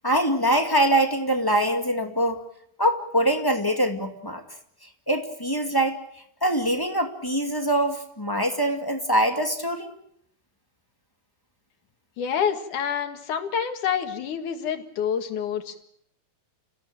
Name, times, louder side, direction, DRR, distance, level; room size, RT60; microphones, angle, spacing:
voice 1, 0.0-2.4 2.8-4.4 5.1-6.0 6.4-9.9, right 1 dB, 10° left, 5 dB, 1.5 m, -23 dB
voice 2, 12.2-15.8, left 8 dB, 75° left, 7 dB, 3.3 m, -27 dB
30.0 x 16.0 x 9.1 m, 0.73 s
omnidirectional pair, 3.5 m